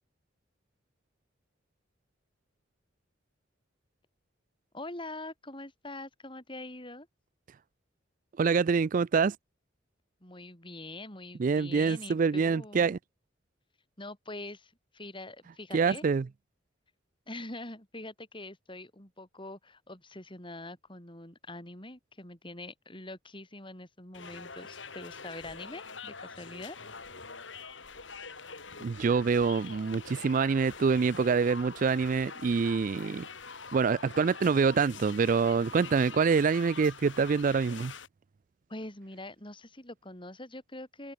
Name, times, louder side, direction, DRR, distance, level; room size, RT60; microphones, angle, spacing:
voice 1, 4.7-7.1 10.2-12.9 14.0-16.0 17.3-26.8 38.7-41.1, left 2 dB, 25° left, 6.7 m, -44 dB
voice 2, 8.4-9.4 11.4-13.0 15.7-16.2 28.8-33.3 33.7-37.9, right 5 dB, 45° right, 0.4 m, -26 dB
sound 1, 24.1-38.1, left 5 dB, 80° left, 6.7 m, -45 dB
head